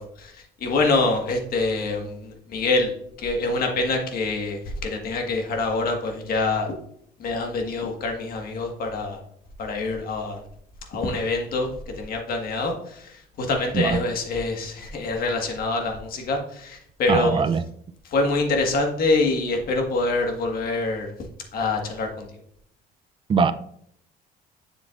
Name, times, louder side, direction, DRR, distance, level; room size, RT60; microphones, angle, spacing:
voice 1, 0.0-2.9 3.2-6.7 7.2-9.2 9.6-10.4 10.9-17.4 18.0-21.1 21.5-22.3, left 3 dB, 60° left, 2 dB, 1.6 m, -25 dB
voice 2, 17.1-17.6 23.3-23.5, right 5 dB, 30° right, 12 dB, 0.4 m, -21 dB
7.1 x 7.0 x 2.5 m, 0.68 s
cardioid pair, 110°, 17 cm